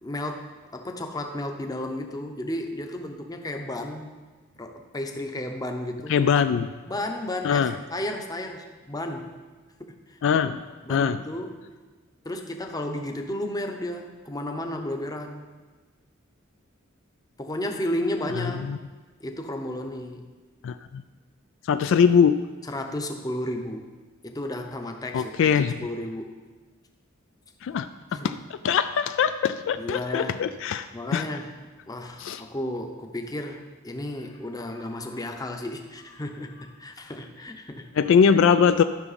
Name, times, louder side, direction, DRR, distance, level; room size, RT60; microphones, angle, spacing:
voice 1, 0.0-4.2 4.6-6.4 6.9-9.4 9.8-10.2 10.5-10.6 10.8-11.7 12.2-15.5 17.4-18.6 19.2-20.3 22.7-25.5 25.8-26.4 28.1-28.3 29.8-30.4 30.9-31.5 31.9-37.9, left 1 dB, 20° left, 4 dB, 0.7 m, -33 dB
voice 2, 6.1-6.7 7.4-7.8 10.2-10.6 10.9-11.2 18.4-18.8 20.6-21.0 21.6-22.4 25.1-25.7 27.6-30.9 31.1-31.2 32.2-32.4 38.0-38.8, left 7 dB, 65° left, 11 dB, 0.3 m, -22 dB
12.5 x 5.9 x 4.1 m, 1.3 s
head